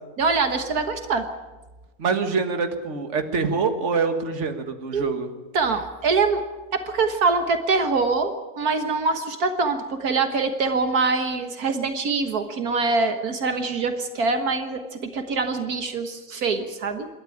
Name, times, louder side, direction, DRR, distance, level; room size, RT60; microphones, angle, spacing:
voice 1, 0.2-1.3 4.9-5.1 5.5-6.4 6.7-17.1, right 4 dB, 75° right, 7 dB, 1.8 m, -24 dB
voice 2, 2.0-5.3, right 4 dB, 50° right, 7 dB, 1.9 m, -25 dB
26.5 x 13.0 x 9.8 m, 1.2 s
omnidirectional pair, 1.6 m